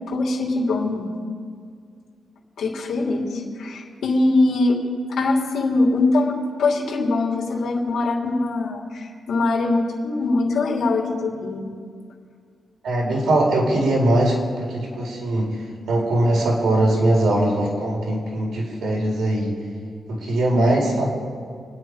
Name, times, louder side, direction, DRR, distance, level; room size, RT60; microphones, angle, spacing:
voice 1, 0.1-1.1 2.6-4.8 5.1-11.7 15.0-15.1 20.5-20.9, left 2 dB, 85° left, -2 dB, 3.0 m, -22 dB
voice 2, 12.8-15.6 15.9-19.5 20.1-21.1, right 1 dB, 80° right, -2 dB, 4.6 m, -21 dB
28.0 x 10.0 x 5.0 m, 2.2 s
wide cardioid pair, 165°, 0 cm